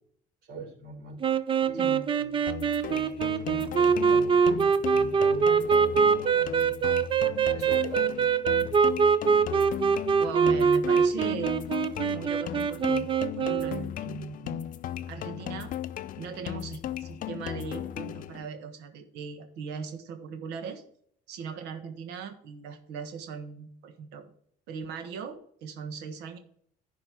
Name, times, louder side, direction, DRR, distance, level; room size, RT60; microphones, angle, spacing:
voice 1, 0.5-1.4 1.6-2.5 2.8-8.2 8.6-8.7, right 3 dB, 70° right, 3 dB, 3.9 m, -44 dB
sound 1, 1.2-13.8, right 6 dB, 30° right, 0.6 m, -24 dB
sound 2, 2.5-18.5, left 11 dB, 55° left, 0.5 m, -37 dB
voice 2, 10.2-11.6 12.1-13.1 13.4-14.6 15.1-15.7 16.2-20.8 21.3-24.3 24.7-26.4, right 6 dB, 90° right, 7 dB, 1.4 m, -39 dB
11.0 x 4.4 x 6.0 m, 0.63 s
cardioid pair, 110°, 17 cm